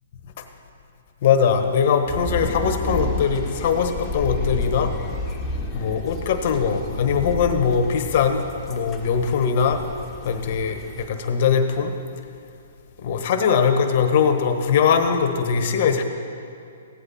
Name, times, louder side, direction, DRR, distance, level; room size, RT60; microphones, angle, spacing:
voice 1, 1.2-4.9 5.7-8.4 8.7-9.8 10.2-11.9 13.0-16.0, left 6 dB, 50° left, 7 dB, 1.1 m, -21 dB
sound 1, 2.1-11.1, left 2 dB, 15° left, 1.4 m, -31 dB
15.5 x 9.9 x 4.2 m, 2.5 s
hypercardioid pair, 135°, 0 cm